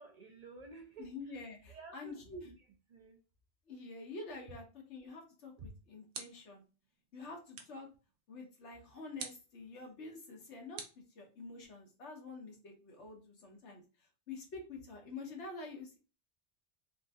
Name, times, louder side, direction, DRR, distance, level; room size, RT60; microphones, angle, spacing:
voice 1, 0.0-3.2 5.6-5.7, right 3 dB, 50° right, 0.5 m, -53 dB
voice 2, 1.0-2.5 3.7-4.6 4.9-6.6 7.1-7.9 8.3-10.8 11.1-13.8 14.3-16.0, left 3 dB, 90° left, 1.3 m, -47 dB
sound 1, 5.4-6.6 7.5-7.9 9.2-9.5 10.8-11.6, right 5 dB, 80° right, 0.9 m, -48 dB
3.7 x 2.6 x 2.3 m
omnidirectional pair, 1.1 m